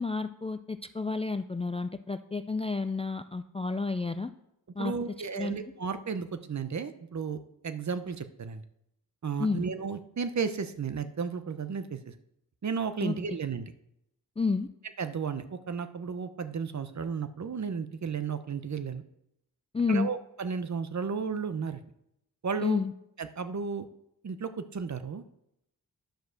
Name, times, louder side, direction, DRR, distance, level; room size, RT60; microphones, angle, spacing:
voice 1, 0.0-4.3 4.8-4.9 5.3-5.6 9.4-9.7 13.0-13.2 14.4-14.7 19.7-20.1 22.6-22.9, left 4 dB, 15° left, 10 dB, 0.3 m, -30 dB
voice 2, 4.8-7.4 7.6-8.6 9.2-12.1 12.6-13.7 15.0-19.0 19.9-21.8 22.4-22.8 23.2-23.9 24.2-25.2, right 6 dB, 45° right, 11 dB, 0.8 m, -33 dB
10.5 x 4.8 x 6.3 m, 0.80 s
wide cardioid pair, 80°, 38 cm